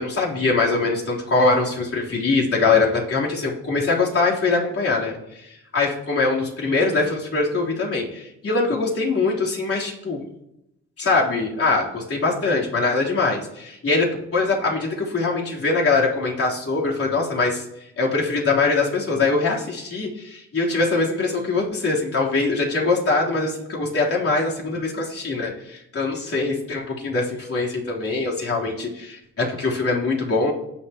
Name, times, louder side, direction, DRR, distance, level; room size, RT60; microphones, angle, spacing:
voice 1, 0.0-5.5 5.7-10.2 11.0-17.6 18.0-30.5, left 3 dB, 50° left, -4 dB, 3.6 m, -22 dB
19.0 x 7.2 x 3.0 m, 0.83 s
cardioid pair, 90°, 30 cm